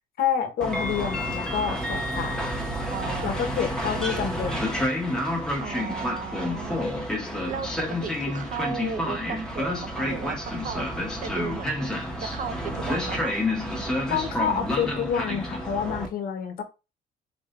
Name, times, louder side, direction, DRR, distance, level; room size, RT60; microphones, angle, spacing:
voice 1, 0.2-2.4 3.2-4.7 14.1-16.6, left 8 dB, 60° left, 1.0 m, -28 dB
Train, 0.6-16.1, left 1 dB, 5° left, 0.9 m, -29 dB
voice 2, 2.9-4.6 5.6-6.9 7.5-13.4, right 7 dB, 50° right, 0.5 m, -36 dB
4.0 x 3.0 x 2.5 m
cardioid pair, 110°, 17 cm